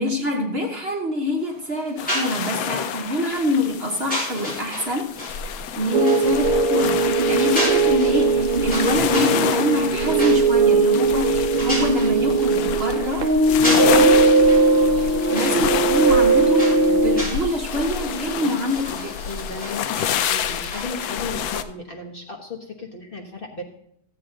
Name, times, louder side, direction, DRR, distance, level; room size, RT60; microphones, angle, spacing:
voice 1, 0.0-5.1 5.8-14.4 15.3-19.2, left 1 dB, 40° right, 1 dB, 1.4 m, -25 dB
sound 1, 1.4-20.8, equal, 5° left, 5.1 m, -34 dB
sound 2, 2.0-21.6, left 8 dB, 70° left, 1.0 m, -29 dB
sound 3, 5.9-17.2, right 3 dB, 65° right, 0.5 m, -19 dB
voice 2, 19.3-23.6, left 3 dB, 35° left, -1 dB, 1.2 m, -35 dB
14.5 x 8.1 x 3.9 m, 0.73 s
omnidirectional pair, 1.9 m